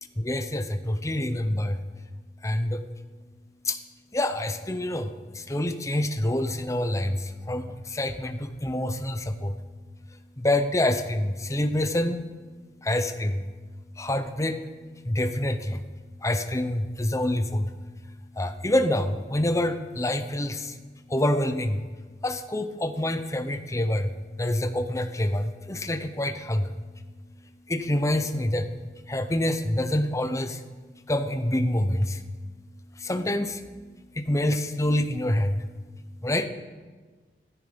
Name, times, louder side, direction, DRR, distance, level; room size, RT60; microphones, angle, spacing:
voice 1, 0.2-1.8 2.4-2.8 3.7-3.8 4.1-5.1 5.5-7.2 7.5-7.6 7.9-9.5 10.4-12.2 12.9-13.4 14.0-14.6 15.1-15.8 16.2-17.7 18.4-20.6 21.1-21.8 22.2-24.1 24.4-26.7 27.7-28.6 29.1-30.5 31.1-32.1 33.1-33.5 34.3-35.6 36.2-36.5, left 1 dB, 20° left, 9 dB, 0.9 m, -26 dB
16.0 x 13.5 x 5.3 m, 1.4 s
head